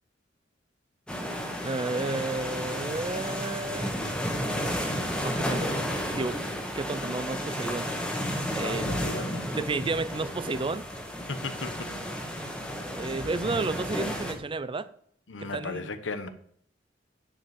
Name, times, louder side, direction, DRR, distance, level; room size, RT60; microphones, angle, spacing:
sound 1, 1.1-14.3, equal, 5° left, 1.7 m, -32 dB
voice 1, 1.6-4.0 5.2-5.7 6.1-6.4 6.8-7.9 8.5-8.9 9.5-10.8 12.9-14.9 15.4-15.9, right 3 dB, 30° right, 0.5 m, -31 dB
voice 2, 8.6-9.5 11.3-12.0 15.3-16.3, left 3 dB, 85° left, 1.1 m, -36 dB
10.0 x 5.3 x 7.7 m
head